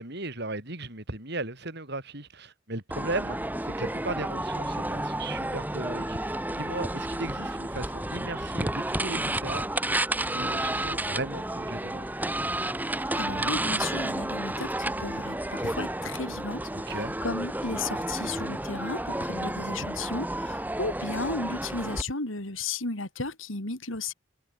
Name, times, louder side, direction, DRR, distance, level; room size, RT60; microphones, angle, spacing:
voice 1, 0.0-9.9 10.3-12.1 16.7-17.2, right 2 dB, 55° right, 6.5 m, -36 dB
sound 1, 2.9-22.0, right 1 dB, 10° right, 1.9 m, -31 dB
voice 2, 13.1-14.7 15.0-17.0 17.2-24.1, left 3 dB, 85° left, 3.6 m, -34 dB
head